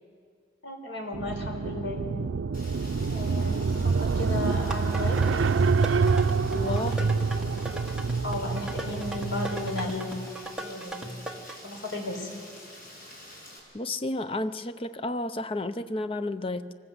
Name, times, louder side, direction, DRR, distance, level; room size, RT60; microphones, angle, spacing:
voice 1, 0.6-2.0 3.1-5.2 6.5-6.9 7.4-7.6 8.2-10.2 10.6-11.2 11.6-12.3, left 2 dB, 75° left, 2 dB, 4.4 m, -35 dB
sound 1, 1.1-9.9, right 4 dB, 80° right, 0.5 m, -27 dB
Rain, 2.5-13.6, left 1 dB, 50° left, 6.2 m, -47 dB
sound 2, 4.7-11.6, right 1 dB, 5° right, 1.4 m, -38 dB
voice 2, 6.5-7.3 13.7-16.7, left 2 dB, 30° left, 12 dB, 0.6 m, -32 dB
24.5 x 19.5 x 8.1 m, 2.1 s
head